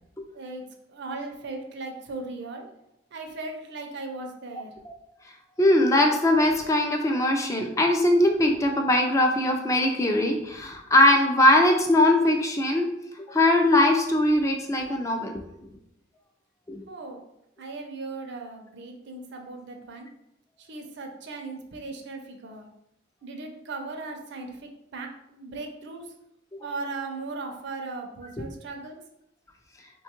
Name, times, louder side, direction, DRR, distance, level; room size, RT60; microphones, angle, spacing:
voice 1, 0.9-2.6 3.1-4.7 16.9-17.2 17.6-20.1 20.6-22.7 23.2-26.1 26.6-29.0, right 3 dB, 65° right, 3 dB, 0.5 m, -37 dB
voice 2, 5.6-12.9 13.2-15.3 16.7-16.8 26.5-26.6, left 1 dB, 15° left, 3 dB, 0.3 m, -21 dB
3.4 x 2.3 x 2.9 m, 0.82 s
head